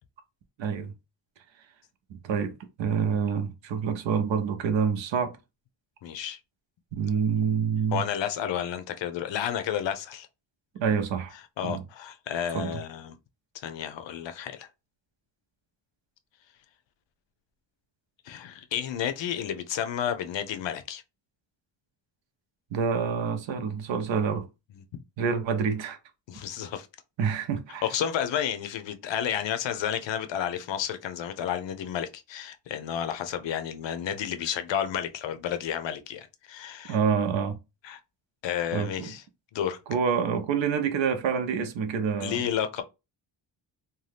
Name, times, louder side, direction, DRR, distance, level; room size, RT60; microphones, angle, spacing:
voice 1, 0.6-0.9 2.1-5.4 6.9-8.0 10.8-11.3 11.6-11.8 12.5-12.8 22.7-24.5 25.2-26.0 27.2-27.9 36.9-37.6 38.7-39.1 39.9-42.5, right 6 dB, 80° right, 0.6 m, -27 dB
voice 2, 6.0-6.4 7.9-10.3 11.6-13.2 13.5-14.7 18.3-21.0 26.3-26.9 27.8-37.0 37.8-38.0 38.4-39.2 39.5-39.8 42.2-42.8, left 9 dB, 75° left, 0.6 m, -31 dB
2.7 x 2.2 x 3.2 m
wide cardioid pair, 140°, 44 cm